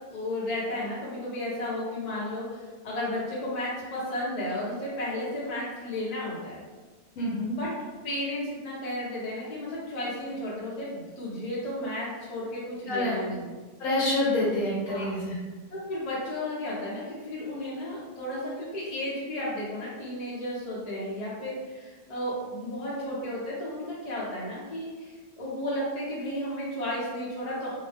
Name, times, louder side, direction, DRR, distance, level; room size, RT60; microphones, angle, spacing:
voice 1, 0.1-6.6 7.4-7.7 8.0-13.5 14.9-15.1 15.7-27.8, left 1 dB, 35° left, -7 dB, 0.8 m, -33 dB
voice 2, 7.2-7.6 12.9-13.2 13.8-15.4, left 1 dB, 70° left, -4 dB, 1.0 m, -27 dB
2.8 x 2.1 x 3.3 m, 1.3 s
omnidirectional pair, 1.5 m